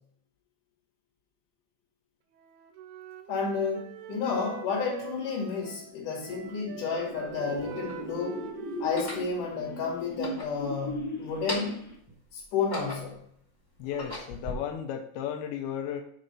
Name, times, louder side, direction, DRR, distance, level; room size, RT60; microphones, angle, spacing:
Wind instrument woodwind instrument, 2.3-6.0 6.2-10.1, right 10 dB, 85° right, 2.3 m, -45 dB
voice 1, 3.3-8.5 8.8-11.8 12.3-13.2, left 5 dB, 50° left, -2 dB, 2.9 m, -31 dB
sound 1, 5.6-12.1, equal, 70° left, 0.9 m, -39 dB
sound 2, 6.3-6.4 7.2-8.1 8.8-9.3 10.0-11.0 11.3-11.9 12.4-13.3 13.8-14.5, left 1 dB, 10° left, 0.9 m, -38 dB
voice 2, 13.8-16.0, left 9 dB, 90° left, 3 dB, 2.2 m, -34 dB
7.6 x 4.0 x 5.3 m, 0.68 s
omnidirectional pair, 5.3 m